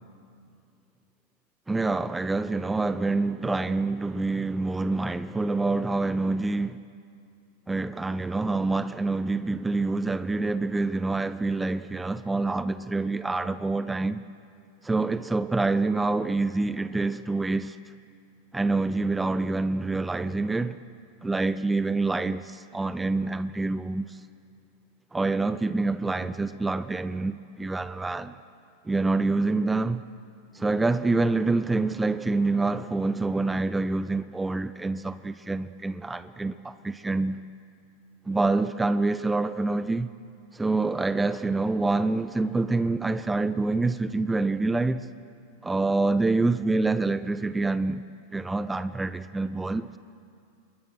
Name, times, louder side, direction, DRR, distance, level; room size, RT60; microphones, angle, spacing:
voice 1, 1.7-6.8 7.7-14.2 14.8-17.8 18.5-20.8 21.2-24.2 25.1-28.4 28.9-30.0 30.5-37.4 38.3-40.1 40.5-45.1 45.6-48.1 48.3-49.9, right 3 dB, 10° right, 0.6 m, -26 dB
28.5 x 21.5 x 6.3 m
figure-of-eight pair, 90°, 0 cm